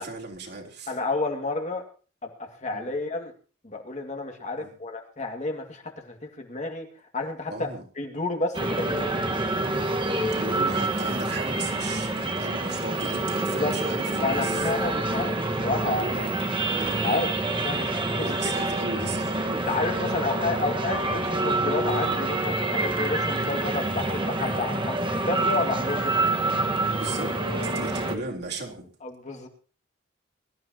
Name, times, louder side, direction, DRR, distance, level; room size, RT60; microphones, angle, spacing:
voice 1, 0.0-0.9 2.7-2.9 4.6-4.7 7.5-7.8 9.6-9.9 10.3-14.7 16.0-17.2 18.2-19.7 23.4-23.6 26.0-26.3 26.9-28.9, right 3 dB, 60° right, -1 dB, 3.8 m, -36 dB
voice 2, 0.9-1.8 2.2-3.3 3.6-6.9 7.1-7.7 8.0-9.4 13.6-13.7 14.2-16.1 17.0-17.3 17.6-18.5 19.7-25.0 25.2-26.1 29.0-29.5, left 3 dB, 40° left, 3 dB, 2.2 m, -30 dB
sound 1, 8.5-28.2, right 2 dB, 25° right, 1.5 m, -27 dB
23.0 x 13.0 x 2.9 m, 0.37 s
head